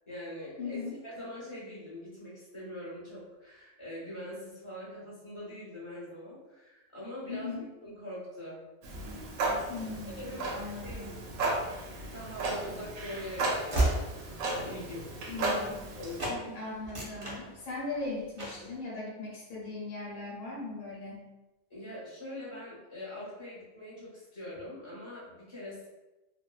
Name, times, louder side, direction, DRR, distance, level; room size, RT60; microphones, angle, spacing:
voice 1, 0.1-7.5 7.8-8.6 10.2-10.5 10.8-11.2 12.0-15.1 16.0-16.6 21.7-25.9, left 1 dB, 30° left, -8 dB, 0.6 m, -43 dB
voice 2, 0.6-1.0 7.3-7.6 9.7-11.1 11.4-11.5 15.3-15.8 16.5-21.3, left 3 dB, 80° left, -4 dB, 1.1 m, -39 dB
Clock, 8.8-16.3, right 2 dB, 85° right, 1.0 m, -35 dB
Train / Slam, 12.3-15.9 16.2-16.4 16.8-18.0 18.4-18.7, right 1 dB, 50° right, 0.3 m, -34 dB
2.8 x 2.1 x 2.2 m, 1.1 s
omnidirectional pair, 1.4 m